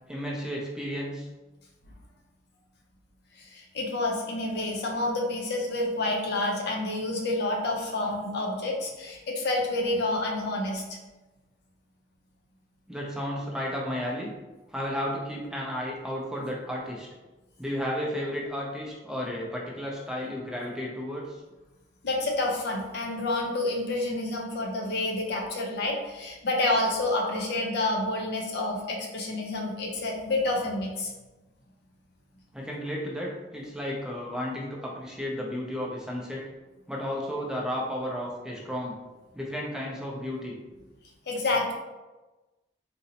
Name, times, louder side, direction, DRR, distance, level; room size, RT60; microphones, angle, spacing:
voice 1, 0.1-1.3 12.9-14.3 14.7-17.1 17.6-21.4 32.5-36.4 36.9-39.0 39.3-40.6, equal, 5° right, -3 dB, 0.4 m, -33 dB
voice 2, 3.4-10.8 22.0-31.1 41.3-41.7, left 2 dB, 65° left, 0 dB, 0.6 m, -29 dB
3.7 x 2.0 x 2.8 m, 1.1 s
head